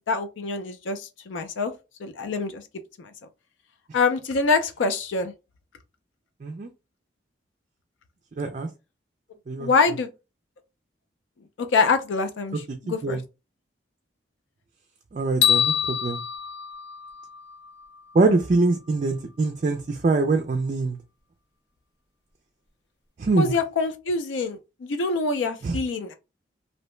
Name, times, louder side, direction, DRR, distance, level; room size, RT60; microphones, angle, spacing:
voice 1, 0.1-1.7 2.0-2.6 3.0-3.1 3.9-5.3 9.6-10.1 11.6-13.2 15.3-15.5 23.4-26.1, left 4 dB, 85° left, 0.4 m, -25 dB
voice 2, 6.4-6.7 8.3-8.7 9.5-9.7 12.7-13.2 15.1-16.2 18.1-21.0 23.2-23.5 25.6-25.8, right 3 dB, 40° right, 0.3 m, -24 dB
sound 1, 15.4-17.7, left 9 dB, 70° left, 0.9 m, -25 dB
2.7 x 2.1 x 3.0 m
head